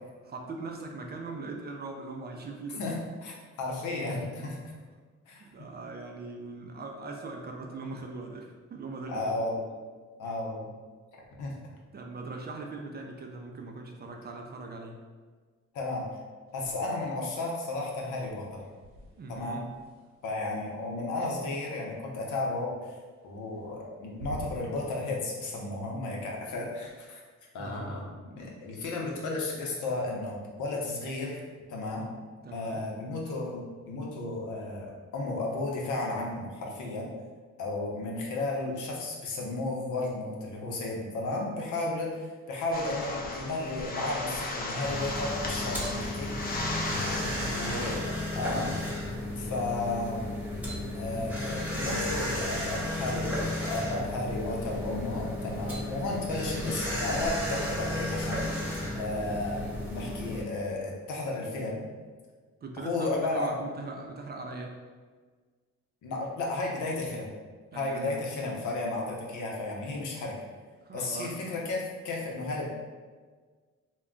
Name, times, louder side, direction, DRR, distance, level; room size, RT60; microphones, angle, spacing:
voice 1, 0.3-2.8 5.4-9.4 10.2-10.4 11.9-15.0 19.2-19.7 27.6-28.0 32.4-32.8 46.9-47.6 59.0-59.4 60.2-60.3 62.6-64.8 67.7-68.2 70.8-71.4, right 3 dB, 35° right, 2 dB, 0.4 m, -40 dB
voice 2, 2.8-4.6 5.3-5.7 9.1-9.6 10.2-10.7 11.4-11.6 15.7-16.1 16.5-18.6 19.3-19.6 20.2-23.0 23.2-27.2 27.5-31.4 31.7-32.0 32.5-37.1 37.6-46.3 47.5-48.0 48.3-48.7 49.4-50.3 50.9-58.6 58.9-61.8 62.8-63.6 66.0-67.3 67.7-70.3 70.9-72.7, left 2 dB, 80° left, -1 dB, 0.7 m, -33 dB
sound 1, 16.5-17.2 17.5-21.6 23.2-23.8 24.1-24.9, right 1 dB, 65° right, 0.8 m, -48 dB
sound 2, 42.7-48.0, left 2 dB, 30° left, 0.5 m, -36 dB
sound 3, 44.8-60.4, left 1 dB, 5° right, 0.8 m, -33 dB
2.2 x 2.2 x 3.7 m, 1.5 s
cardioid pair, 90°, 30 cm